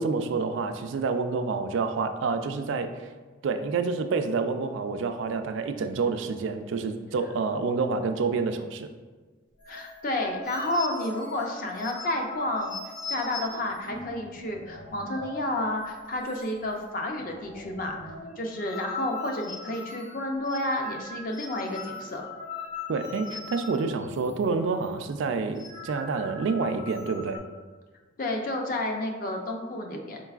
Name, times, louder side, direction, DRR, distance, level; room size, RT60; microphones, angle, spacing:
voice 1, 0.0-2.9 3.4-8.9 22.9-27.4, right 4 dB, 75° right, 8 dB, 0.3 m, -28 dB
sound 1, 9.6-15.6 15.8-16.0 16.3-16.8 17.1-24.4 24.7-24.9 25.4-27.4, left 4 dB, 75° left, 0.7 m, -41 dB
voice 2, 9.7-12.8 13.1-18.0 18.4-22.2 28.2-30.2, left 1 dB, 45° left, 2 dB, 0.5 m, -30 dB
4.5 x 3.9 x 2.3 m, 1.3 s
head